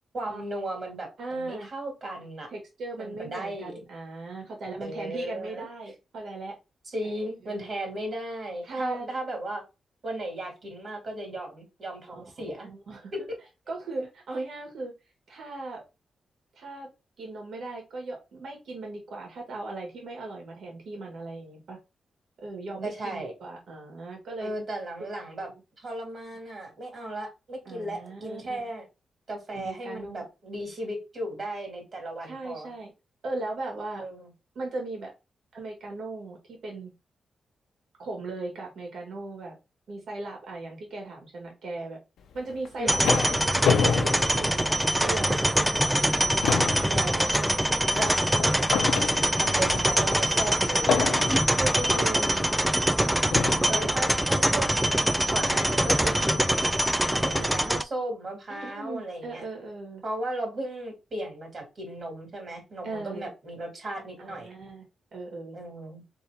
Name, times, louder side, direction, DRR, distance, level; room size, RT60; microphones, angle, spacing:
voice 1, 0.1-2.5 3.0-3.7 4.8-5.7 6.9-9.6 10.0-12.7 22.8-23.3 24.4-25.5 25.8-28.8 29.3-32.7 34.0-34.3 42.8-43.1 47.9-48.1 49.0-49.1 49.4-51.2 53.7-55.0 55.3-56.6 57.1-59.4 60.0-64.6 65.5-66.0, right 1 dB, 45° right, 3 dB, 2.1 m, -35 dB
voice 2, 1.2-1.7 2.5-6.6 7.4-7.7 8.6-9.1 12.1-12.3 12.6-13.1 13.7-14.9 15.3-15.8 16.6-16.9 17.2-21.8 22.4-24.5 25.0-25.1 27.7-28.6 29.5-30.2 32.2-32.9 33.2-34.0 34.6-35.1 35.5-36.9 38.0-39.6 39.9-42.0 42.3-46.6 46.9-47.9 48.2-48.4 49.2-49.5 51.6-52.5 53.7-53.9 54.5-54.7 58.5-60.0 62.8-63.3 64.2-64.8 65.1-65.6, right 2 dB, 75° right, 0 dB, 1.8 m, -38 dB
sound 1, 42.5-45.2 45.6-45.8 46.1-49.6 50.9-51.6 52.5-52.6 53.3-53.8, left 6 dB, 90° left, 0.6 m, -28 dB
sound 2, 42.9-57.8, equal, 5° right, 0.3 m, -24 dB
4.2 x 3.4 x 3.5 m, 0.26 s
wide cardioid pair, 135°, 0 cm